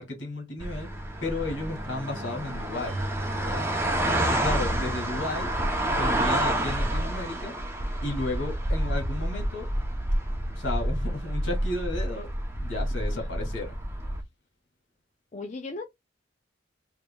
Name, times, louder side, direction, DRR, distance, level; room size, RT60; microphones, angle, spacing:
voice 1, 0.0-2.9 3.4-3.7 4.0-5.5 5.8-7.5 8.0-9.7 10.5-12.3 12.6-13.8, left 2 dB, 70° left, 2.3 m, -33 dB
sound 1, 0.6-14.2, right 1 dB, 10° right, 0.7 m, -29 dB
Keyboard (musical), 2.9-7.4, right 1 dB, 85° right, 0.7 m, -38 dB
voice 2, 13.1-13.5 15.3-15.8, left 3 dB, 35° left, 0.5 m, -38 dB
5.0 x 3.0 x 2.3 m
head